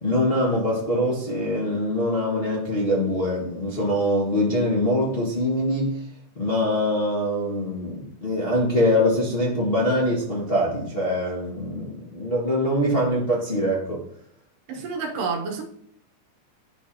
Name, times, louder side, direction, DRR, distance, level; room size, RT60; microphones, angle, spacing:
voice 1, 0.0-5.9 6.4-14.0, left 1 dB, 25° left, 1.2 m, -23 dB
voice 2, 14.7-15.6, right 5 dB, 90° right, 2.9 m, -29 dB
12.0 x 4.8 x 2.8 m
omnidirectional pair, 3.8 m